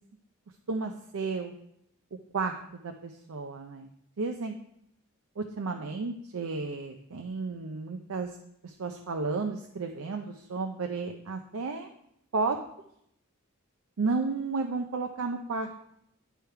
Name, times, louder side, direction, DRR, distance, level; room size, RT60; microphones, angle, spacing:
voice 1, 0.7-1.5 2.3-3.9 4.2-4.5 5.4-8.3 8.6-11.9 12.3-12.6 14.0-15.7, right 4 dB, 80° right, 4 dB, 0.5 m, -32 dB
10.0 x 3.4 x 4.5 m, 0.75 s
head